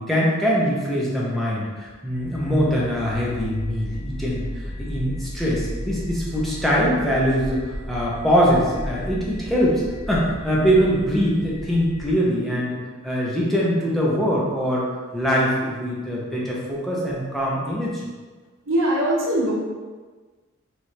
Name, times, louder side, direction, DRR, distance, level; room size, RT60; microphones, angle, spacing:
voice 1, 0.0-12.8 13.0-14.9 15.1-18.0, equal, ahead, -6 dB, 0.7 m, -22 dB
sound 1, 2.1-12.1, equal, 30° right, 1.0 m, -34 dB
voice 2, 18.7-19.5, right 1 dB, 70° right, -6 dB, 0.8 m, -21 dB
3.1 x 2.6 x 4.3 m, 1.4 s
head